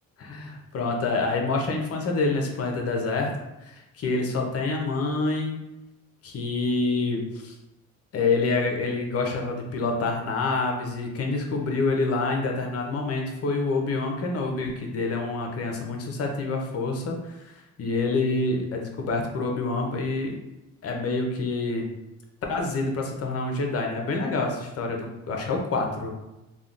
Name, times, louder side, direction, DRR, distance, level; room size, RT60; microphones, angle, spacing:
voice 1, 0.2-3.3 3.6-5.6 6.2-7.5 8.1-17.5 17.8-20.3 20.8-21.9 22.5-26.1, left 3 dB, 50° left, 2 dB, 0.6 m, -27 dB
3.5 x 2.2 x 2.4 m, 0.97 s
cardioid pair, 90°, 30 cm